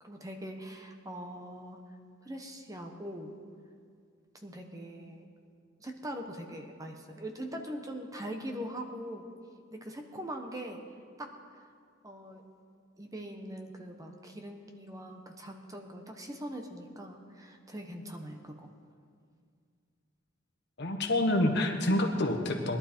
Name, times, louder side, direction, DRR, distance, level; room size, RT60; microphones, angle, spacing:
voice 1, 0.0-1.8 2.2-3.3 4.4-5.3 5.8-9.3 9.7-10.8 11.2-11.3 12.0-12.4 13.0-18.7, equal, 15° right, 3 dB, 1.0 m, -42 dB
voice 2, 20.8-22.8, left 1 dB, 55° left, 4 dB, 1.4 m, -27 dB
20.5 x 11.5 x 4.4 m, 2.1 s
head